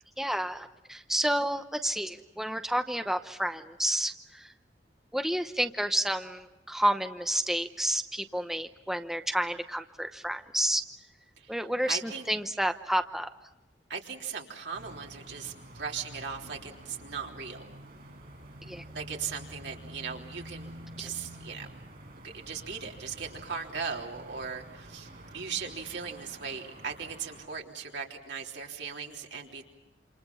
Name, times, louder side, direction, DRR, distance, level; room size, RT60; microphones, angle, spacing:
voice 1, 0.2-4.5 5.1-10.8 11.5-13.3 18.7-18.8, right 1 dB, ahead, 7 dB, 0.8 m, -30 dB
voice 2, 11.9-12.3 13.9-17.7 18.9-21.7 22.2-25.1 25.3-29.6, right 6 dB, 75° right, 0 dB, 3.6 m, -38 dB
sound 1, 14.7-27.4, right 1 dB, 55° right, 5.4 m, -48 dB
28.0 x 27.5 x 5.7 m, 1.0 s
head